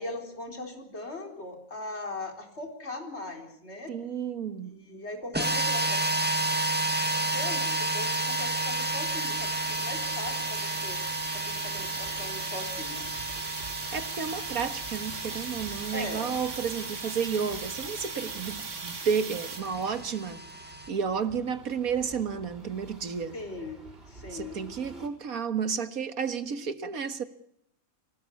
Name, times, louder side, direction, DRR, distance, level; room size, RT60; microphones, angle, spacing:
voice 1, 0.0-3.9 4.7-6.0 7.1-11.0 11.3-13.1 15.9-16.3 23.3-24.6, left 2 dB, 50° left, 4.4 m, -39 dB
voice 2, 3.9-4.8 13.9-23.4 24.3-27.2, right 6 dB, 80° right, 2.0 m, -32 dB
sound 1, 5.3-20.9, right 2 dB, 5° right, 1.8 m, -32 dB
sound 2, 5.4-24.7, right 5 dB, 60° right, 2.0 m, -39 dB
sound 3, 8.4-25.1, right 2 dB, 40° right, 4.9 m, -51 dB
25.0 x 18.0 x 8.4 m
omnidirectional pair, 1.5 m